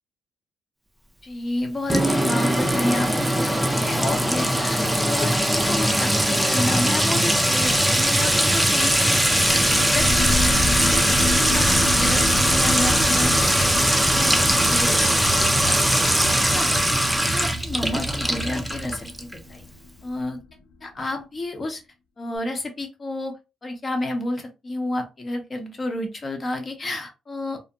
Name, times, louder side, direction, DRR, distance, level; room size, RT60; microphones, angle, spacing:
voice 1, 1.2-10.3 10.6-13.4 14.0-15.7 16.5-16.7 17.2-19.6 20.0-20.4 20.8-21.8 22.2-27.6, left 2 dB, 35° left, 4 dB, 0.8 m, -31 dB
Sink (filling or washing) / Trickle dribble / Fill (with liquid), 1.9-19.3, right 1 dB, 5° right, 0.4 m, -20 dB
sound 1, 9.4-20.5, left 3 dB, 85° left, 0.4 m, -30 dB
2.5 x 2.1 x 2.7 m, 0.26 s
cardioid pair, 90°, 0 cm